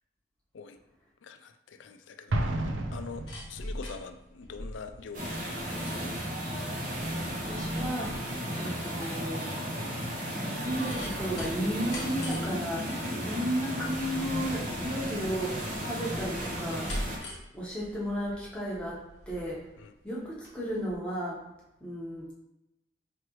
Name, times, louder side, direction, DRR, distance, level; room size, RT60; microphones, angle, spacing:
voice 1, 1.2-2.5 2.9-6.0 13.0-13.2 19.8-19.9, left 5 dB, 80° left, 8 dB, 0.4 m, -44 dB
Explosion, 2.3-3.9, right 1 dB, 90° right, 0.5 m, -31 dB
sound 1, 2.9-20.6 20.9-21.0, equal, 65° left, 1.0 m, -44 dB
sound 2, 5.1-17.2, equal, 40° right, 0.9 m, -34 dB
voice 2, 6.9-8.1 8.5-9.5 10.3-16.9 17.5-19.6 20.0-21.4 21.8-22.3, equal, 5° left, -6 dB, 1.0 m, -34 dB
4.9 x 3.1 x 3.0 m, 0.92 s
head